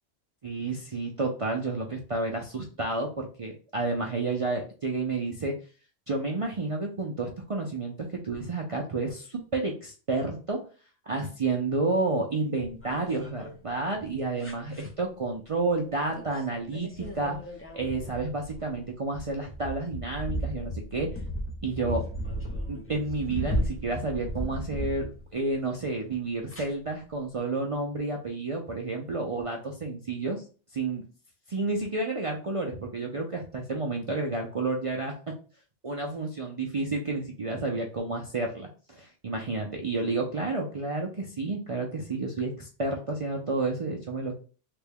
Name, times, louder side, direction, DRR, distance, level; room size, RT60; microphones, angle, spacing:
voice 1, 0.4-5.5 6.1-10.6 11.1-17.4 17.7-21.1 21.6-22.0 22.7-25.1 25.3-30.4 30.7-31.0 31.5-35.1 35.8-44.3, right 3 dB, 55° right, 0 dB, 0.4 m, -30 dB
sound 1, 12.6-13.5 14.4-14.9 16.1-16.4 16.7-25.5 26.5-26.6, equal, 15° left, 0.4 m, -35 dB
3.4 x 2.2 x 3.4 m, 0.37 s
omnidirectional pair, 1.2 m